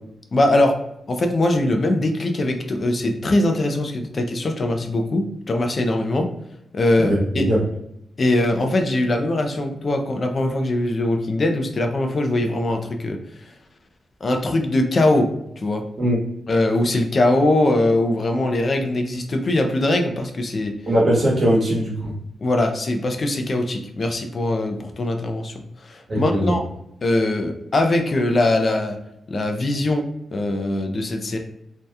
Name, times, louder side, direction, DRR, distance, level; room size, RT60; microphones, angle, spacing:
voice 1, 0.3-0.8 1.1-6.3 6.7-7.4 8.2-13.2 14.2-15.3 15.6-15.9 16.5-20.7 22.4-25.5 25.8-26.6 27.0-29.0 29.3-31.4, left 1 dB, 40° left, 4 dB, 0.4 m, -21 dB
voice 2, 7.0-7.6 16.0-16.2 20.9-22.2 26.1-26.5, equal, 40° right, -4 dB, 1.1 m, -20 dB
2.7 x 2.2 x 3.4 m, 0.80 s
wide cardioid pair, 115°, 0 cm